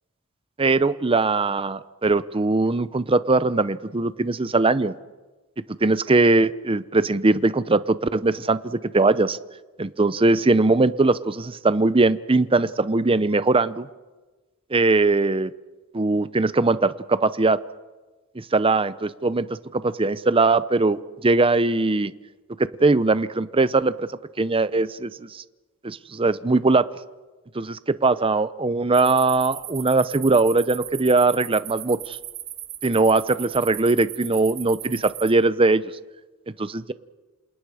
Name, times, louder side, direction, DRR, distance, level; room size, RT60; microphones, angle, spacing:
voice 1, 0.6-5.0 5.8-9.4 9.8-13.9 14.7-15.5 15.9-17.6 18.4-22.1 22.8-24.1 24.4-25.4 25.8-26.9 27.5-32.2 32.8-35.8 36.6-36.9, right 3 dB, 25° right, 15 dB, 0.7 m, -20 dB
sound 1, 28.9-35.3, right 13 dB, 65° right, 2.2 m, -37 dB
28.5 x 28.0 x 5.0 m, 1.2 s
head